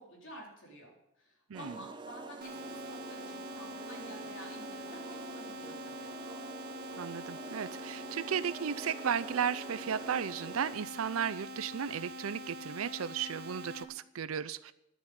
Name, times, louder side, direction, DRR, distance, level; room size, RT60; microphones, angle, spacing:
voice 1, 0.0-6.2, equal, 60° left, -1 dB, 3.7 m, -51 dB
sound 1, 1.5-10.8, right 3 dB, 20° right, 0.4 m, -46 dB
sound 2, 2.4-13.8, equal, 45° right, 1.4 m, -45 dB
voice 2, 6.9-14.7, right 7 dB, 80° right, 16 dB, 0.5 m, -35 dB
11.5 x 7.1 x 9.2 m, 0.84 s
head